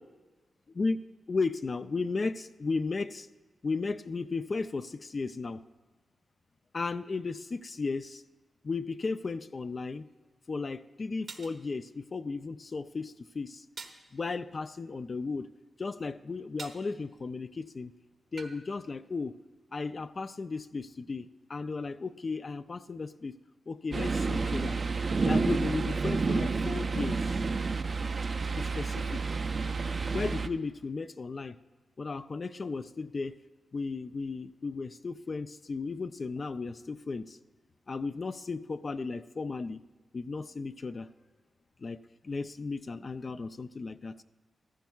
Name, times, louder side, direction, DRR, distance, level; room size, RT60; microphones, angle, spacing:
voice 1, 0.7-3.3 3.6-5.6 6.7-8.2 8.6-10.1 10.5-13.7 14.1-15.5 15.8-17.9 18.3-19.3 19.7-23.4 23.7-24.8 25.2-27.3 28.4-29.3 30.1-31.6 32.0-33.3 33.7-37.4 37.9-39.8 40.1-41.1 41.8-44.1, left 4 dB, 50° left, 10 dB, 0.4 m, -35 dB
sound 1, 10.2-10.3 11.3-11.6 13.8-14.1 16.6-16.9 18.4-18.6, right 4 dB, 75° right, 1.1 m, -44 dB
sound 2, 23.9-30.5, right 4 dB, 50° right, 0.5 m, -30 dB
14.5 x 14.5 x 2.3 m, 1.3 s
cardioid pair, 55°, 0 cm